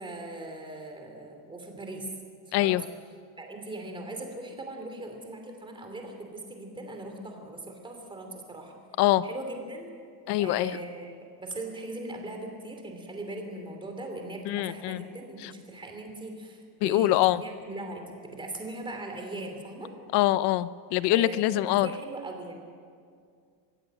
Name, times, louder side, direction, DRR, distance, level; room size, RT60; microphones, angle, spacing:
voice 1, 0.0-2.1 2.6-2.9 3.4-8.7 9.2-9.9 10.4-17.1 17.4-19.9 21.1-22.5, right 2 dB, 10° right, 3 dB, 2.7 m, -40 dB
voice 2, 2.5-2.8 9.0-9.2 10.3-10.7 14.5-15.0 16.8-17.4 20.1-21.9, left 15 dB, 65° left, 16 dB, 0.7 m, -24 dB
23.5 x 15.5 x 7.7 m, 2.2 s
cardioid pair, 175°, 44 cm